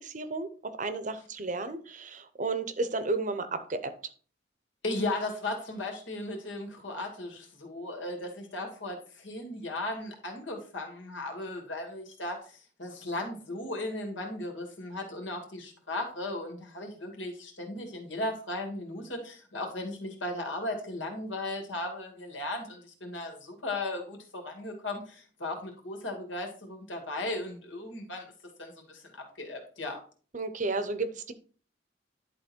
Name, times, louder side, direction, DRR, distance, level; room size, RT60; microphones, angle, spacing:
voice 1, 0.0-3.9 30.3-31.3, right 3 dB, 40° right, 11 dB, 0.8 m, -33 dB
voice 2, 4.8-28.3 28.6-30.0, left 2 dB, 85° left, 2 dB, 2.4 m, -36 dB
11.0 x 4.0 x 4.4 m, 0.42 s
head